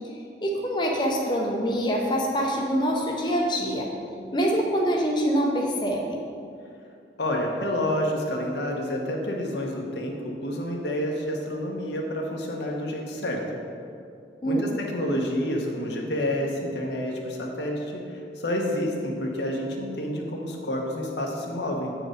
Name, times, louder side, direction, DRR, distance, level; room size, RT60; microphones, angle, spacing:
voice 1, 0.4-3.9 4.3-6.2 14.4-14.7, equal, 25° left, -1 dB, 0.7 m, -25 dB
voice 2, 7.2-13.4 14.4-22.0, left 1 dB, 85° left, 0 dB, 1.1 m, -29 dB
7.8 x 4.7 x 5.1 m, 2.4 s
head